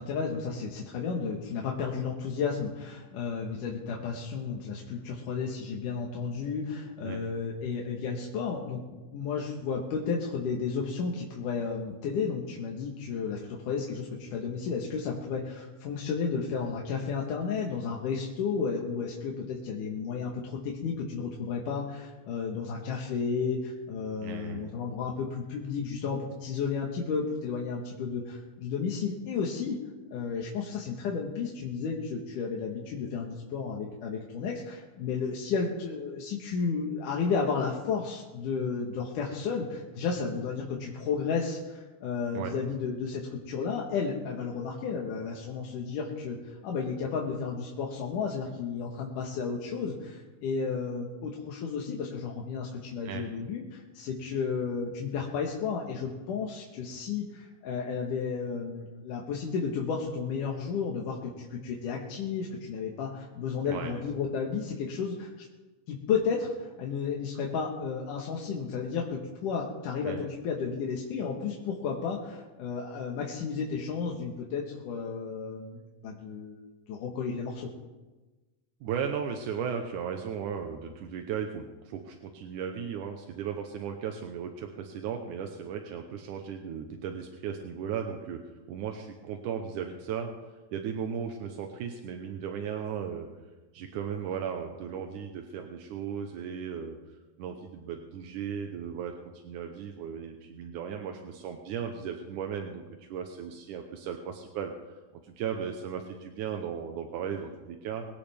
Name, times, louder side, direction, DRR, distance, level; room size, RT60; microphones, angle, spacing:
voice 1, 0.0-8.8 9.1-29.8 30.1-65.5 65.9-76.6 76.9-77.7, left 5 dB, 90° left, -1 dB, 3.1 m, -33 dB
voice 2, 24.2-24.7 42.3-42.5 53.0-53.3 63.7-63.9 70.1-70.2 78.8-88.4 88.7-90.3 90.7-93.3 93.7-97.0 97.4-108.1, right 7 dB, 85° right, 4 dB, 2.5 m, -36 dB
22.5 x 17.5 x 3.5 m, 1.2 s
omnidirectional pair, 3.5 m